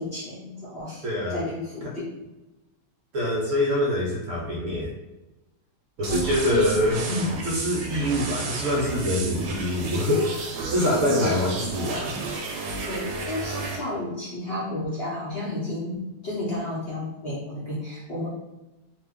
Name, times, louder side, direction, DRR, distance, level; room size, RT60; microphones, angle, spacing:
voice 1, 0.0-1.0 1.3-2.1 6.1-6.7 7.1-7.3 7.7-8.1 11.1-11.4 12.8-18.3, left 1 dB, 50° left, -7 dB, 0.7 m, -31 dB
voice 2, 1.0-1.4 1.8-1.9 3.1-4.9 6.0-7.0 7.4-10.3 10.7-12.1, left 1 dB, 65° right, -3 dB, 0.9 m, -25 dB
sound 1, 6.0-13.8, right 3 dB, 80° right, 1.2 m, -32 dB
2.7 x 2.2 x 3.5 m, 1.0 s
omnidirectional pair, 1.7 m